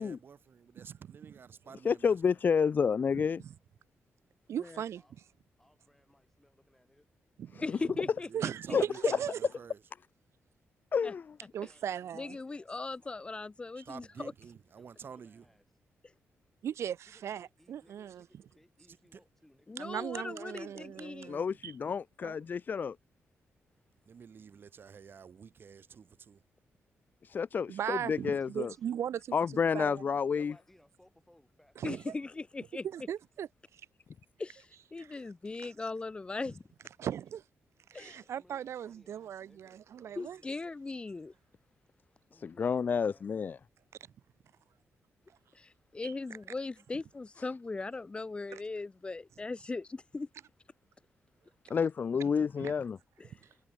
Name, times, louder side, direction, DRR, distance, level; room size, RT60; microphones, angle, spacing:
voice 1, 0.0-2.1 8.3-9.8 13.9-15.4 18.9-19.2 24.1-26.4, right 6 dB, 50° right, 3.0 m, -51 dB
voice 2, 1.8-3.4 7.5-7.6 8.7-9.2 10.9-11.3 21.3-23.0 27.2-28.7 29.3-30.5 42.4-43.6 51.7-53.0, left 6 dB, 40° left, 0.5 m, -30 dB
voice 3, 3.1-3.5 4.5-5.0 7.4-7.6 8.3-9.4 11.5-12.4 13.8-13.9 16.6-18.3 19.8-21.7 22.2-22.4 27.7-30.0 31.8-32.1 32.8-33.8 35.0-35.1 37.0-37.4 37.9-40.4 46.0-46.1 48.5-48.6 52.6-52.7, right 9 dB, 75° right, 0.9 m, -38 dB
voice 4, 5.6-7.1 11.5-13.2 14.8-15.8 17.1-19.9 28.4-29.0 29.4-29.5 30.3-32.0 38.3-40.5 42.3-43.5, left 1 dB, 5° left, 5.3 m, -64 dB
voice 5, 7.6-8.5 11.0-11.1 12.1-14.3 19.7-21.3 31.8-32.9 34.4-36.6 37.9-38.2 40.2-41.3 45.5-50.3 53.2-53.4, left 3 dB, 20° left, 1.0 m, -39 dB
wide cardioid pair, 135°, 5 cm